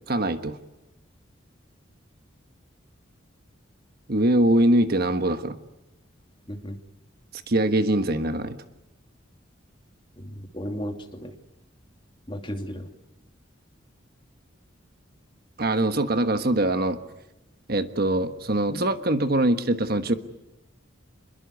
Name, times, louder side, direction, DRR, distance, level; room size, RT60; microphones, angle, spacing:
voice 1, 0.1-0.6 4.1-5.6 7.3-8.6 15.6-17.0 17.7-20.1, right 1 dB, 50° right, 9 dB, 1.4 m, -23 dB
voice 2, 10.2-11.3 12.3-12.9 18.7-18.8, equal, 25° left, 4 dB, 2.7 m, -34 dB
27.0 x 22.5 x 8.2 m, 0.94 s
head